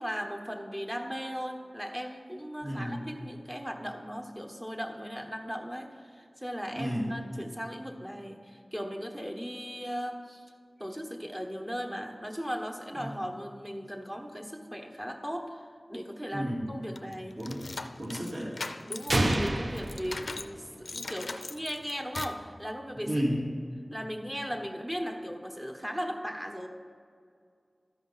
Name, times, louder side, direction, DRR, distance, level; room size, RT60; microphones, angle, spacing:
voice 1, 0.0-10.5 10.8-17.4 18.9-23.1 23.9-26.7, equal, 15° right, 2 dB, 1.3 m, -37 dB
voice 2, 2.6-3.0 6.7-7.0 13.0-13.1 16.3-16.6 17.4-17.6 18.0-18.5 23.1-23.4, equal, 80° right, -6 dB, 2.5 m, -31 dB
sound 1, 17.0-20.5 20.9-22.5, left 3 dB, 80° left, 0.4 m, -40 dB
sound 2, 19.1-21.0, right 1 dB, 55° right, 0.7 m, -29 dB
13.0 x 5.2 x 5.6 m, 2.3 s
wide cardioid pair, 45°, 0 cm